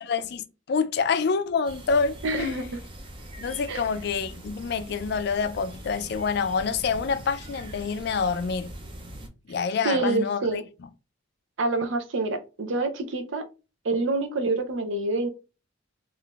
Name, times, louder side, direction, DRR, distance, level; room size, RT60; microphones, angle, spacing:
voice 1, 0.0-2.6 3.4-8.7 9.5-10.6, left 5 dB, 55° left, 0.3 m, -27 dB
sound 1, 1.6-9.3, right 1 dB, 25° right, 0.5 m, -42 dB
voice 2, 2.2-2.8 3.7-3.8 9.8-10.6 11.6-13.4 13.8-15.3, right 2 dB, 70° right, 0.6 m, -27 dB
3.5 x 2.5 x 2.4 m
head